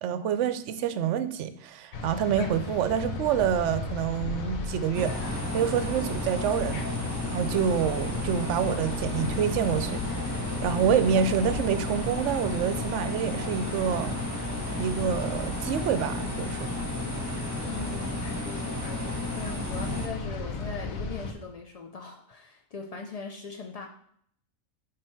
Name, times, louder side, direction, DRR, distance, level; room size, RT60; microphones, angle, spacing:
voice 1, 0.0-6.9 7.2-14.2 14.8-16.7, right 8 dB, 65° right, 13 dB, 0.8 m, -27 dB
sound 1, 1.9-21.3, left 3 dB, 85° left, 1.3 m, -36 dB
sound 2, 4.9-20.1, left 1 dB, 15° right, 1.0 m, -33 dB
voice 2, 17.6-23.9, left 5 dB, 60° left, 3 dB, 0.4 m, -40 dB
8.9 x 3.6 x 4.4 m, 0.65 s
omnidirectional pair, 1.4 m